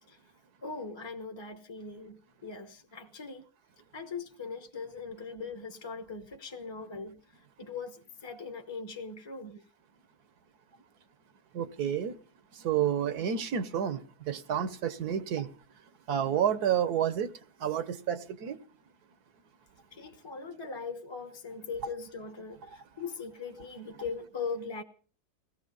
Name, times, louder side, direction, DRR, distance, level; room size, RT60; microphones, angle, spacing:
voice 1, 0.6-3.4 3.9-7.2 7.6-9.6 19.9-24.8, left 4 dB, 20° left, 1.0 m, -40 dB
voice 2, 11.5-12.2 12.6-15.5 16.1-17.3 17.6-18.6 22.6-22.8, right 9 dB, 75° right, 1.5 m, -30 dB
17.5 x 14.5 x 5.4 m
omnidirectional pair, 1.7 m